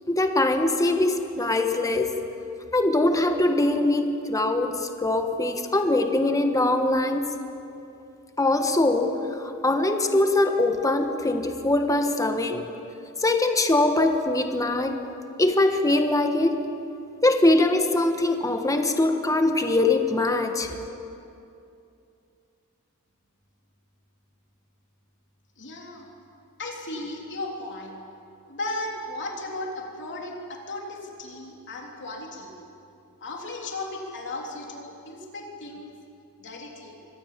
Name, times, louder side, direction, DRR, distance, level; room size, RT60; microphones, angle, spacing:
voice 1, 0.1-2.2 2.7-7.3 8.4-12.7 13.2-15.0 15.4-16.6 17.2-20.8, left 2 dB, 15° left, 6 dB, 1.4 m, -22 dB
voice 2, 25.6-26.1 26.6-28.0 28.5-32.5 33.2-35.9 36.4-37.0, left 2 dB, 55° left, 0 dB, 3.4 m, -35 dB
24.5 x 19.0 x 7.5 m, 2.7 s
head